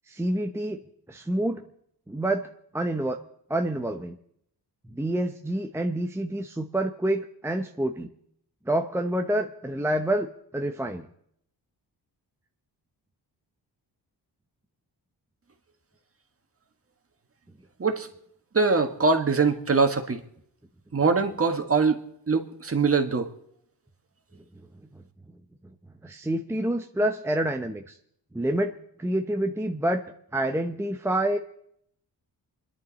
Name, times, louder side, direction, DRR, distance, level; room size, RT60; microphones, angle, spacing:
voice 1, 0.1-0.8 1.1-1.6 2.1-2.5 2.7-3.2 3.5-4.2 4.9-8.1 8.7-10.3 10.5-11.1 24.6-24.7 26.0-28.0 28.3-28.7 29.0-30.0 30.3-31.4, right 1 dB, 5° right, 5 dB, 0.8 m, -27 dB
voice 2, 18.5-20.2 20.9-22.0 22.3-23.3, right 4 dB, 35° right, 6 dB, 1.7 m, -23 dB
27.0 x 11.0 x 4.1 m, 0.70 s
cardioid pair, 95°, 41 cm